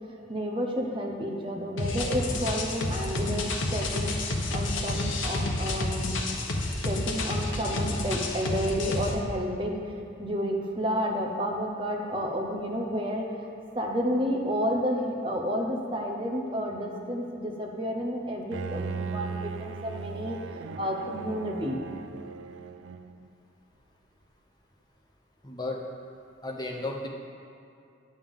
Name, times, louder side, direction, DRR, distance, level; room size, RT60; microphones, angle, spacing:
voice 1, 0.3-6.1 6.8-9.9 10.2-13.5 13.7-20.4 20.8-21.8, equal, 25° right, 0 dB, 0.8 m, -31 dB
sound 1, 1.8-9.1, left 2 dB, 85° left, 0.8 m, -30 dB
Bowed string instrument, 18.5-23.3, right 5 dB, 85° right, 0.3 m, -37 dB
voice 2, 25.4-25.8 26.4-27.1, left 2 dB, 20° left, -1 dB, 0.8 m, -33 dB
9.2 x 6.9 x 3.6 m, 2.5 s
head